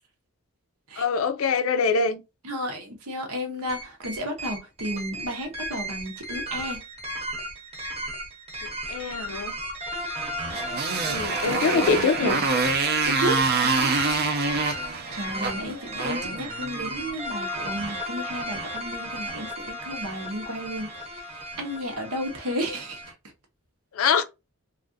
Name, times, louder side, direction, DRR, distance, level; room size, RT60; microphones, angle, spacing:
voice 1, 1.0-2.2 8.9-9.5 11.1-12.4 15.5-15.8 23.9-24.2, left 5 dB, 65° left, 0.4 m, -24 dB
voice 2, 2.4-6.8 13.0-13.9 14.6-23.1, equal, 85° right, 1.0 m, -33 dB
sound 1, 3.7-23.1, right 1 dB, 30° right, 0.8 m, -35 dB
Motorcycle, 10.5-17.0, right 4 dB, 45° right, 0.5 m, -26 dB
3.2 x 2.5 x 2.6 m
head